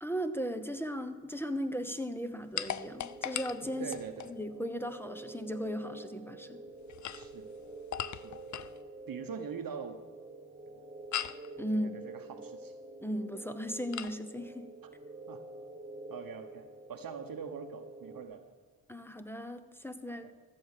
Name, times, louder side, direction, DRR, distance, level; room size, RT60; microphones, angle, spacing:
voice 1, 0.0-3.9 4.2-6.6 11.6-12.0 13.0-14.7 18.9-20.3, equal, 5° left, 10 dB, 0.8 m, -37 dB
sound 1, 2.6-4.4 6.8-8.8 11.1-11.5 13.9-14.2, left 10 dB, 45° left, 0.5 m, -39 dB
sound 2, 2.8-18.2, right 2 dB, 15° right, 1.1 m, -48 dB
voice 2, 3.8-4.3 7.1-7.5 8.1-8.4 9.1-10.0 11.7-12.7 14.8-14.9 15.3-15.4 16.1-18.5 20.1-20.3, right 6 dB, 50° right, 7 dB, 1.0 m, -43 dB
14.0 x 7.6 x 6.7 m, 1.5 s
cardioid pair, 80°, 43 cm